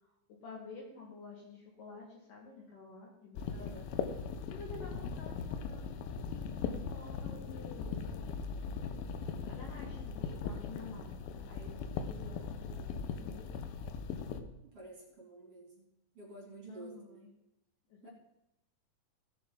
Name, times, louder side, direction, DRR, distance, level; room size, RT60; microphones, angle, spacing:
voice 1, 0.0-3.8 4.5-8.0 9.5-13.9 16.7-17.3 17.9-18.1, left 3 dB, 65° left, -2 dB, 2.9 m, -51 dB
sound 1, 3.4-14.4, left 6 dB, 85° left, 2.6 m, -39 dB
voice 2, 3.5-3.8 14.7-15.9 16.2-17.2 18.0-18.1, right 2 dB, 40° right, -3 dB, 3.6 m, -50 dB
17.0 x 6.9 x 3.8 m, 0.85 s
omnidirectional pair, 4.4 m